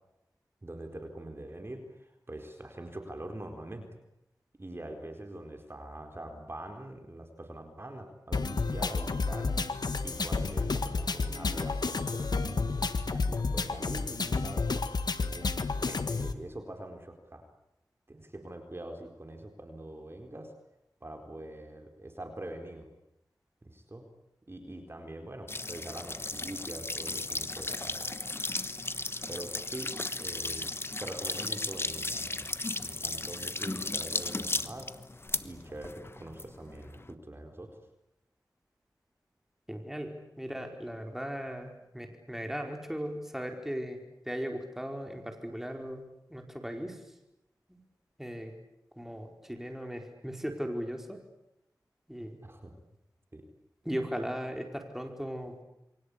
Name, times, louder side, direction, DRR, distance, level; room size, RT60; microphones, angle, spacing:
voice 1, 0.6-3.9 4.6-9.5 10.0-14.6 15.2-15.5 15.8-17.5 18.1-20.5 21.0-22.9 23.6-24.1 24.5-28.0 29.3-30.7 31.0-32.5 32.8-34.9 35.4-37.7 52.4-52.7 53.3-53.4, right 1 dB, 35° right, 4 dB, 4.3 m, -44 dB
sound 1, 8.3-16.3, left 4 dB, 75° left, 1.7 m, -31 dB
sound 2, 25.5-37.1, left 2 dB, 35° left, 1.2 m, -35 dB
voice 2, 39.7-46.0 46.3-47.0 47.7-47.8 48.2-48.5 49.0-51.2 52.1-52.4 53.8-55.6, equal, 5° right, 4 dB, 4.8 m, -37 dB
28.5 x 24.0 x 8.5 m, 0.86 s
wide cardioid pair, 60°, 7 cm